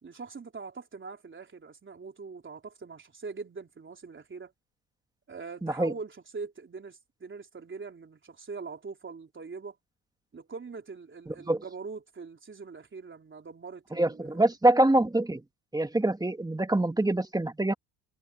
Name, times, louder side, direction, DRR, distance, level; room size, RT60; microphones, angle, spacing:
voice 1, 0.0-4.5 5.3-9.8 10.3-14.4, right 4 dB, 25° right, 3.7 m, -42 dB
voice 2, 5.6-5.9 11.5-11.6 14.0-15.4 15.7-17.7, right 1 dB, 10° right, 1.7 m, -25 dB
cardioid pair, 100°, 45 cm